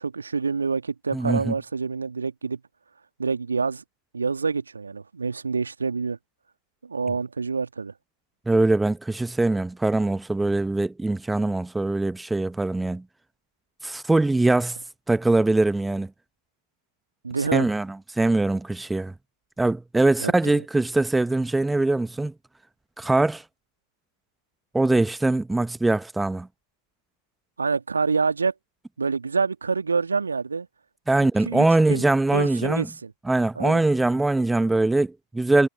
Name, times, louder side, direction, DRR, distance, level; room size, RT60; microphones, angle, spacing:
voice 1, 0.0-2.6 3.2-3.8 4.1-6.2 6.8-7.9 17.2-17.7 20.2-20.6 27.6-28.5 29.0-30.7 31.4-32.0 32.3-33.1 33.6-33.8, right 4 dB, 75° right, 2.0 m, -27 dB
voice 2, 1.1-1.5 8.5-13.0 13.8-14.8 15.1-16.1 17.5-17.9 18.2-19.1 19.6-22.3 23.0-23.4 24.7-26.5 31.1-32.9 33.3-35.7, right 2 dB, 5° right, 1.1 m, -22 dB
figure-of-eight pair, 90°, 0 cm